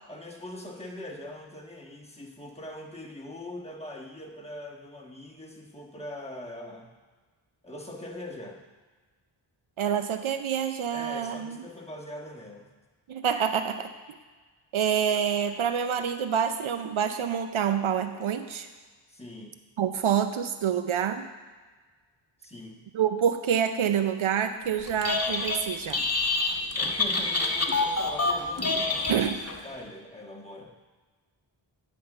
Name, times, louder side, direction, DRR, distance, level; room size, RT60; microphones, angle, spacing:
voice 1, 0.1-6.9 7.6-8.6 10.9-12.7 19.1-19.5 22.4-22.8 26.8-29.2 29.6-30.7, left 1 dB, 10° left, -2 dB, 1.4 m, -42 dB
voice 2, 9.8-11.6 13.1-13.9 14.7-18.7 19.8-21.3 22.9-26.0 29.1-29.4, right 8 dB, 70° right, 9 dB, 0.6 m, -27 dB
Telephone, 24.9-25.6 25.9-29.6, left 3 dB, 30° left, 0.9 m, -27 dB
9.7 x 3.7 x 6.5 m, 1.4 s
cardioid pair, 45°, 50 cm